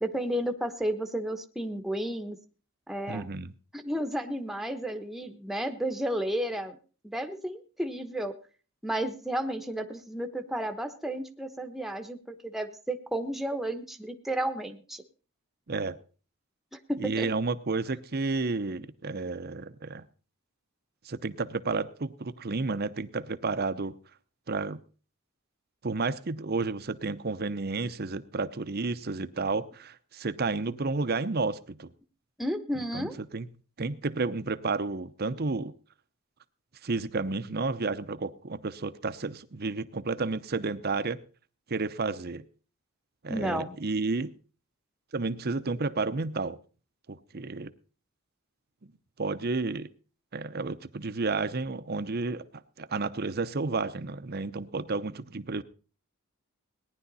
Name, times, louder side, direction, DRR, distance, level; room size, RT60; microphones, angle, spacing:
voice 1, 0.0-2.4 2.9-3.3 3.7-6.8 7.0-8.3 8.8-15.0 16.7-17.3 32.4-33.1 43.3-43.7, right 1 dB, ahead, 7 dB, 1.0 m, -32 dB
voice 2, 3.1-3.5 15.7-16.0 17.0-20.0 21.0-23.9 24.5-24.8 25.8-31.9 32.9-33.5 33.8-35.7 36.8-41.2 41.7-42.4 43.2-44.3 45.1-46.6 47.1-47.7 49.2-49.9 50.3-52.4 52.8-55.6, right 3 dB, 45° right, 13 dB, 0.7 m, -31 dB
18.5 x 10.5 x 4.1 m, 0.37 s
head